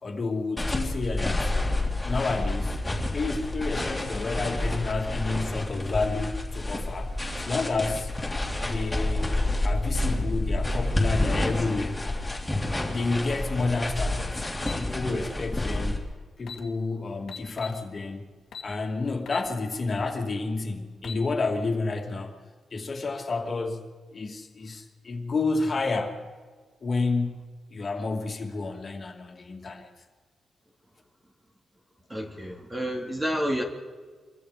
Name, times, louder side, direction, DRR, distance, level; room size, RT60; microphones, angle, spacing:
voice 1, 0.0-1.6 2.0-2.8 3.1-7.2 7.4-8.1 8.6-9.3 9.6-12.0 12.9-14.4 14.7-16.0 16.4-18.3 18.6-22.3 22.7-23.9 24.1-26.2 26.8-29.9, left 3 dB, 35° left, 2 dB, 2.6 m, -30 dB
sound 1, 0.6-16.0, left 2 dB, 5° left, 3.4 m, -29 dB
sound 2, 14.6-14.8 16.0-16.1 16.4-16.6 17.3-17.8 18.5-18.7 19.3-19.5 19.9-20.0 20.8-21.2, left 6 dB, 70° left, 2.2 m, -39 dB
voice 2, 32.1-33.6, equal, 15° right, 1 dB, 2.6 m, -29 dB
27.5 x 23.5 x 5.2 m, 1.5 s
wide cardioid pair, 150°, 0 cm